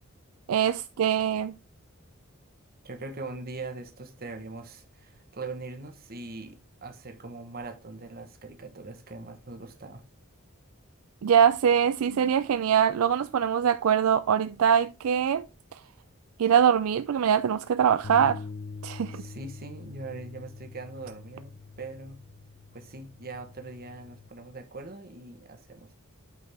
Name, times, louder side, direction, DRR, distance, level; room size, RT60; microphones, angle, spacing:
voice 1, 0.5-1.5 11.2-15.5 15.7-15.8 16.4-18.4 18.8-19.2, right 8 dB, 75° right, 0.4 m, -23 dB
voice 2, 2.8-10.0 19.1-22.2 22.7-25.9, right 3 dB, 45° right, 1.2 m, -41 dB
Bass guitar, 18.0-24.3, left 4 dB, 65° left, 0.5 m, -44 dB
8.5 x 4.7 x 3.5 m
head